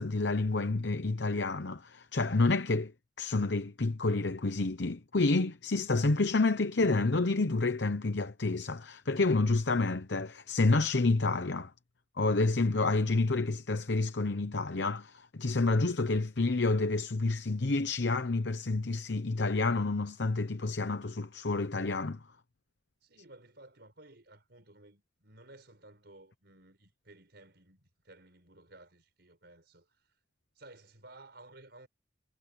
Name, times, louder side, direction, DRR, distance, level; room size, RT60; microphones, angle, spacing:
voice 1, 0.0-2.9 3.2-11.7 12.2-22.2, left 3 dB, 65° left, 0.9 m, -29 dB
voice 2, 23.0-30.2 30.6-31.9, right 2 dB, 60° right, 6.0 m, -56 dB
head